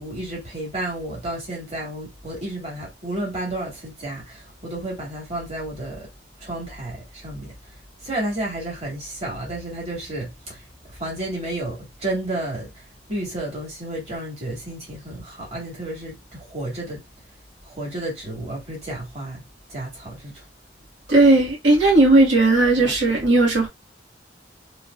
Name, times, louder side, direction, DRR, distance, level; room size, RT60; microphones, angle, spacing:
voice 1, 0.0-6.1 6.4-7.5 8.0-10.6 10.9-12.8 13.1-17.0 17.6-19.4 19.7-20.5, right 1 dB, 35° right, 1.8 m, -31 dB
voice 2, 21.1-23.7, right 2 dB, 85° right, 1.7 m, -16 dB
3.2 x 2.9 x 2.4 m
head